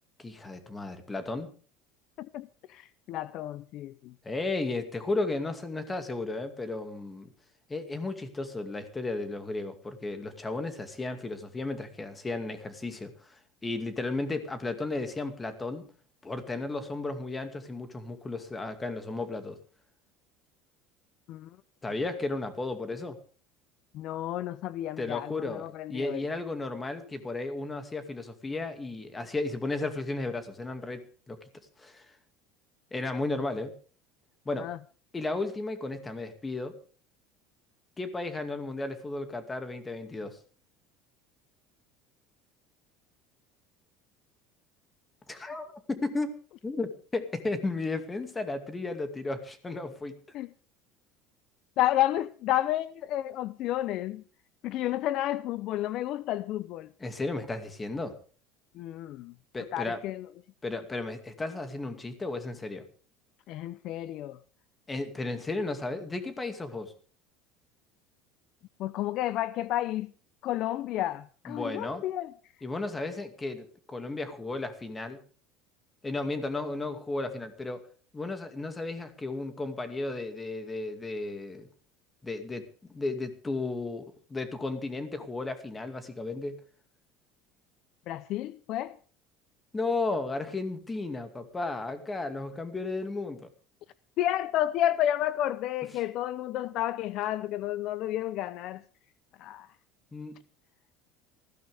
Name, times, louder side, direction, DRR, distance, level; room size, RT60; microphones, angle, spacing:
voice 1, 0.2-1.5 4.2-7.3 7.7-15.9 16.2-19.6 21.8-23.2 25.0-31.4 31.8-32.1 32.9-33.7 34.5-34.7 35.1-36.7 38.0-40.4 45.3-50.2 57.0-58.2 59.5-60.0 60.6-62.8 64.9-66.9 71.5-72.0 72.6-75.2 76.0-77.9 78.1-81.7 82.2-86.6 89.7-93.5 100.1-100.4, left 2 dB, 15° left, 2.4 m, -34 dB
voice 2, 2.2-4.1 21.3-21.5 23.9-26.3 34.6-34.8 50.3-50.5 51.8-54.2 54.6-56.9 58.7-59.3 59.7-60.3 63.5-64.4 68.8-70.1 70.4-72.3 88.1-89.0 94.2-98.8 99.4-99.7, left 13 dB, 50° left, 0.7 m, -31 dB
19.5 x 16.0 x 3.6 m
cardioid pair, 150°, 0 cm